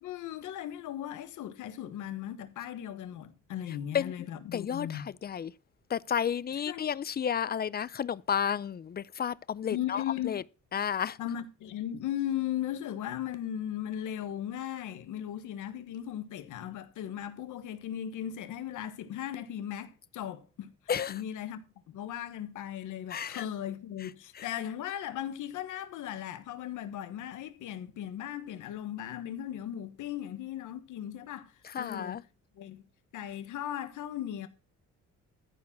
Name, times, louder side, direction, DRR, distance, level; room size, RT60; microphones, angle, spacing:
voice 1, 0.0-5.1 6.7-6.8 9.7-10.4 11.2-20.7 21.1-32.2 32.6-32.8 33.1-34.5, left 11 dB, 85° left, 1.4 m, -37 dB
voice 2, 4.5-5.5 5.9-10.4 10.7-11.2 20.9-21.2 23.1-23.4 24.0-24.1 24.3-24.5 31.6-32.2, left 8 dB, 35° left, 0.5 m, -32 dB
14.0 x 4.7 x 6.0 m
cardioid pair, 90°, 30 cm